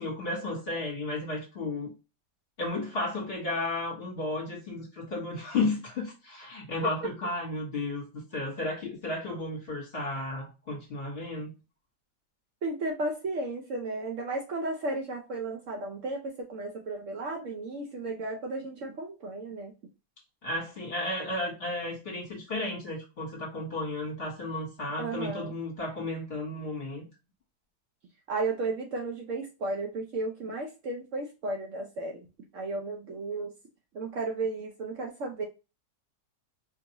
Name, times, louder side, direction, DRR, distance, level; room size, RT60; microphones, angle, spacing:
voice 1, 0.0-1.9 2.6-11.5 20.4-27.1, left 2 dB, 40° left, 1.5 m, -33 dB
voice 2, 12.6-19.7 25.0-25.5 28.3-32.3 32.5-33.5 33.9-35.4, right 2 dB, 60° right, 0.9 m, -34 dB
4.6 x 2.5 x 2.9 m
omnidirectional pair, 1.7 m